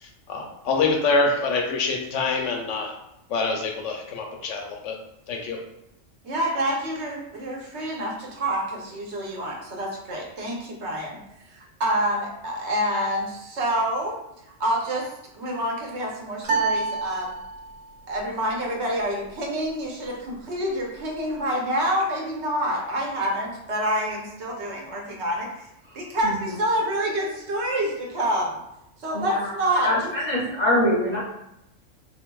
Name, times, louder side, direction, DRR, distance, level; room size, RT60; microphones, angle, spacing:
voice 1, 0.0-2.9 3.3-4.9 5.3-5.6, left 3 dB, 75° left, 2 dB, 0.9 m, -25 dB
voice 2, 6.2-11.2 11.4-14.2 14.6-17.3 18.1-25.7 25.9-28.6 29.0-30.1, equal, 65° right, -1 dB, 1.0 m, -27 dB
sound 1, 16.4-17.9, right 3 dB, 90° right, 1.2 m, -27 dB
voice 3, 29.8-31.2, left 1 dB, 45° left, -4 dB, 0.7 m, -23 dB
4.0 x 2.6 x 2.2 m, 0.84 s
omnidirectional pair, 1.3 m